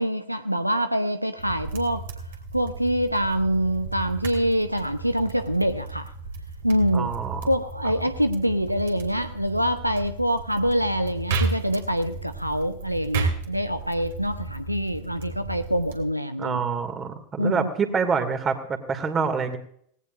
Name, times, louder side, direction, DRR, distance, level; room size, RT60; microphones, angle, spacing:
voice 1, 0.0-2.0 2.5-6.1 6.6-7.1 7.5-16.6 17.4-17.7, equal, 90° right, 10 dB, 0.8 m, -25 dB
sound 1, 1.4-16.0, right 4 dB, 60° right, 3.1 m, -34 dB
voice 2, 6.9-7.4 16.4-19.6, right 5 dB, 20° right, 8 dB, 2.3 m, -26 dB
18.5 x 17.5 x 2.6 m, 0.65 s
figure-of-eight pair, 90°, 0 cm